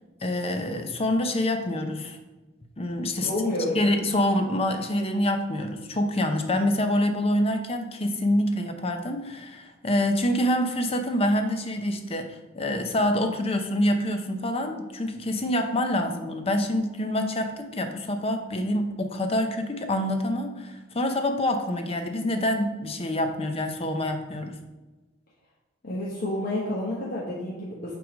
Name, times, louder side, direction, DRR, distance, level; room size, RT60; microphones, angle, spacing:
voice 1, 0.2-2.2 2.8-3.3 3.7-24.6, left 1 dB, 30° left, 6 dB, 0.6 m, -26 dB
voice 2, 3.2-3.8 25.8-27.9, left 1 dB, 50° left, -6 dB, 1.1 m, -29 dB
5.8 x 3.9 x 4.9 m, 1.1 s
head